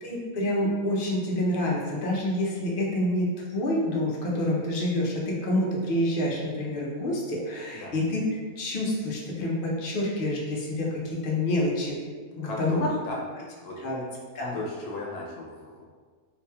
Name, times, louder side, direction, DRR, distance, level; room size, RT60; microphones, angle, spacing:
voice 1, 0.0-8.2 8.6-12.0 12.4-12.9 13.8-14.0 14.3-14.6, left 1 dB, 55° left, -3 dB, 0.6 m, -27 dB
voice 2, 12.4-13.2 13.6-13.8 14.5-15.9, left 2 dB, 85° left, -2 dB, 1.2 m, -36 dB
3.9 x 3.0 x 2.2 m, 1.6 s
omnidirectional pair, 1.6 m